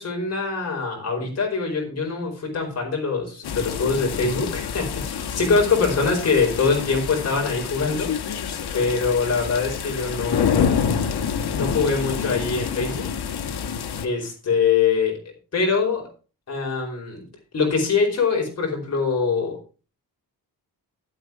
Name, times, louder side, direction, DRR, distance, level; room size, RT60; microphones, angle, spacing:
voice 1, 0.0-8.1 8.7-11.0 11.5-13.1 14.0-15.2 15.5-16.0 16.5-17.3 17.5-19.6, left 4 dB, 40° left, -1 dB, 4.7 m, -23 dB
sound 1, 3.4-14.1, left 7 dB, 90° left, 1.4 m, -27 dB
12.5 x 8.0 x 4.6 m, 0.35 s
wide cardioid pair, 180°, 38 cm